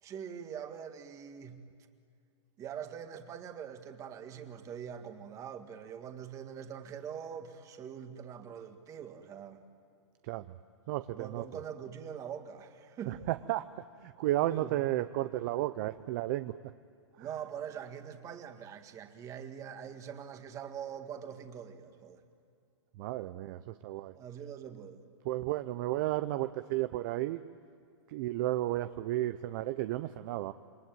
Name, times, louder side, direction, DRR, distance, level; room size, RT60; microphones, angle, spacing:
voice 1, 0.0-1.6 2.6-9.6 11.1-13.2 14.5-14.8 17.2-22.2 24.1-25.0, right 8 dB, 20° right, 1.8 m, -43 dB
voice 2, 10.9-11.4 13.1-16.5 17.2-17.3 23.0-24.1 25.2-27.4 28.1-30.5, right 15 dB, 40° right, 0.6 m, -33 dB
27.5 x 23.5 x 9.3 m
hypercardioid pair, 150°, 15 cm